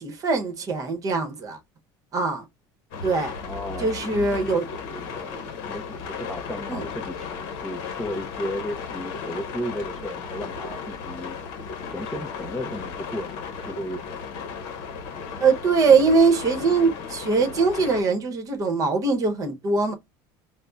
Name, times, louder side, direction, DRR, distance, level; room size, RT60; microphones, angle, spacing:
voice 1, 0.0-1.6 2.1-2.4 3.0-3.4 3.8-4.6 5.2-5.5 6.7-6.8 15.4-19.9, right 4 dB, 35° right, 0.9 m, -22 dB
sound 1, 2.9-18.0, left 5 dB, 70° left, 0.7 m, -35 dB
voice 2, 3.4-4.5 4.8-5.2 5.7-11.4 11.9-14.2, equal, ahead, 0.5 m, -34 dB
5.1 x 2.0 x 2.2 m
cardioid pair, 150°, 10 cm